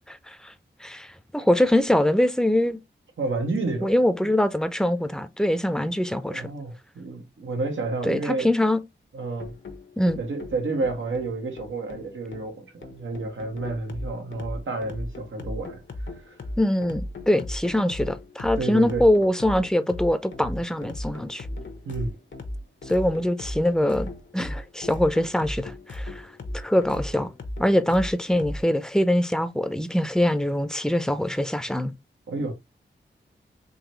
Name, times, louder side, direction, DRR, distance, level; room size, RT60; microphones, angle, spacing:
voice 1, 0.1-0.5 0.8-2.8 3.8-6.5 8.0-8.8 10.0-10.2 16.6-21.5 22.9-27.3 27.6-31.9, left 1 dB, 5° left, 0.6 m, -23 dB
voice 2, 3.2-3.9 6.3-8.5 9.1-9.5 10.2-15.8 16.2-16.4 18.6-19.0 21.8-22.1 32.3-32.5, right 3 dB, 85° right, 1.3 m, -30 dB
sound 1, 9.4-28.6, left 1 dB, 70° left, 0.9 m, -37 dB
4.0 x 3.1 x 3.0 m
cardioid pair, 55°, 20 cm